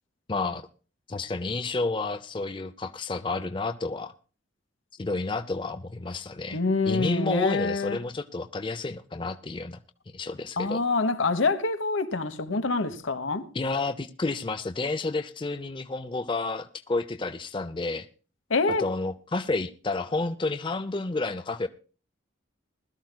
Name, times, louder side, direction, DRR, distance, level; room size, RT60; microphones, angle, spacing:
voice 1, 0.3-0.7 1.1-4.1 5.0-6.6 6.9-9.8 10.1-10.8 13.5-18.1 18.8-21.7, left 3 dB, 25° left, 0.5 m, -30 dB
voice 2, 6.5-8.0 10.6-13.5 18.5-18.9, left 3 dB, 80° left, 1.1 m, -26 dB
20.5 x 13.0 x 2.2 m
head